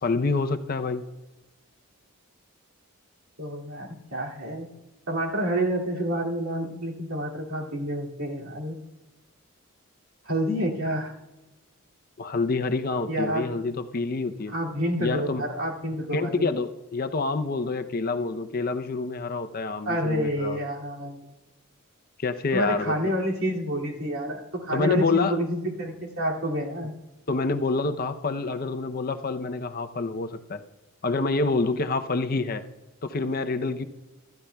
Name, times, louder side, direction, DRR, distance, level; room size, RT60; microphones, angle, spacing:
voice 1, 0.0-1.0 12.2-14.5 15.0-15.4 16.1-20.6 22.2-23.1 24.7-25.4 27.3-30.6 31.0-32.6 33.0-33.8, left 3 dB, 40° left, 8 dB, 0.6 m, -27 dB
voice 2, 3.4-4.7 5.1-8.8 10.2-11.1 13.1-13.5 14.5-16.5 19.8-21.3 22.5-26.9, right 1 dB, 70° right, -2 dB, 2.4 m, -28 dB
25.5 x 13.0 x 2.3 m, 1.1 s
head